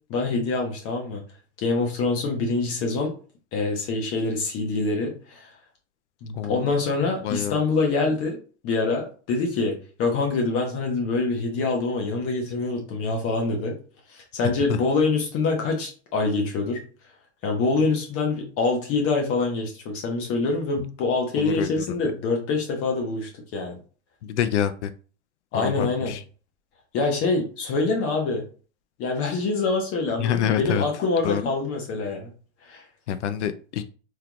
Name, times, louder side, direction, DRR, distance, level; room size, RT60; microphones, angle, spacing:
voice 1, 0.1-1.2 1.6-3.1 3.5-5.5 6.2-8.4 8.6-13.8 14.1-16.8 17.4-23.8 25.5-26.2 26.9-28.4 29.0-32.3 32.7-32.8, left 3 dB, 40° left, 1 dB, 1.1 m, -25 dB
voice 2, 6.3-6.7 7.2-7.6 14.7-14.8 21.4-21.9 24.2-24.9 25.5-26.2 30.2-30.8 31.2-31.4 33.1-33.8, left 9 dB, 85° left, 11 dB, 0.5 m, -26 dB
3.5 x 3.2 x 2.3 m, 0.38 s
hypercardioid pair, 115°, 34 cm